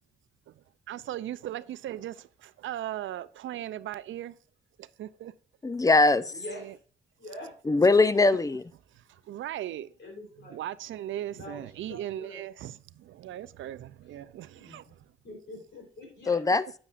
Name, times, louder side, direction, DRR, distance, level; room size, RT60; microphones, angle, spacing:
voice 1, 0.5-4.4 4.8-5.3 6.5-6.7 8.9-9.9 10.5-15.0, right 12 dB, 90° right, 0.5 m, -38 dB
voice 2, 5.6-6.3 7.7-8.6 16.3-16.6, left 3 dB, 20° left, 0.5 m, -21 dB
voice 3, 6.3-6.8 7.2-7.5 8.2-8.4 10.0-10.6 11.3-11.6 11.9-12.4 14.6-14.8 15.2-16.4, left 2 dB, 70° left, 3.6 m, -44 dB
9.8 x 8.6 x 2.5 m
cardioid pair, 65°, 19 cm